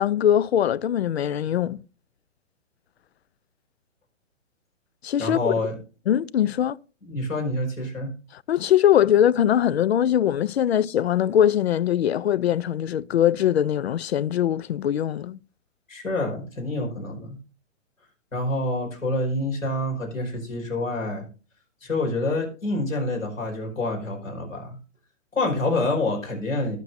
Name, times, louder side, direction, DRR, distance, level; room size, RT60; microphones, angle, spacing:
voice 1, 0.0-1.8 5.0-5.5 6.1-6.8 8.5-15.4, left 10 dB, 55° left, 0.5 m, -21 dB
voice 2, 5.2-5.8 7.0-8.1 15.9-17.4 18.3-21.2 21.8-24.8 25.3-26.8, left 2 dB, 80° left, 5.3 m, -27 dB
20.5 x 6.8 x 2.6 m
figure-of-eight pair, 125°, 39 cm